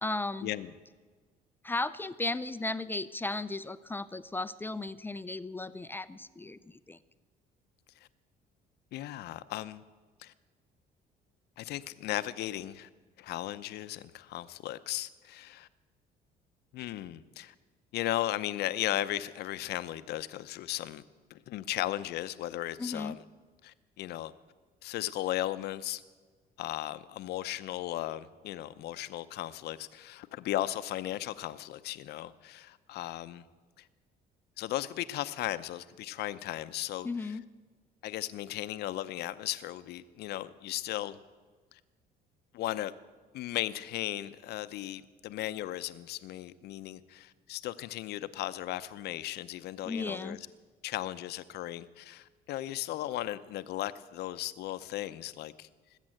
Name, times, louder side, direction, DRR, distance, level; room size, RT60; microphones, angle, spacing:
voice 1, 0.0-0.5 1.6-7.0 22.8-23.2 37.0-37.4 49.8-50.4, left 2 dB, 10° left, 13 dB, 0.5 m, -35 dB
voice 2, 8.9-9.8 10.2-10.3 11.6-12.9 13.2-15.7 16.7-17.5 17.9-21.0 21.3-23.2 23.6-24.3 24.8-26.0 26.6-33.4 33.8-33.9 34.6-37.1 38.0-41.2 41.7-41.8 42.5-42.9 43.3-50.4 50.8-55.7, left 14 dB, 75° left, 13 dB, 0.7 m, -36 dB
19.5 x 8.4 x 7.7 m, 1.4 s
cardioid pair, 110°, 17 cm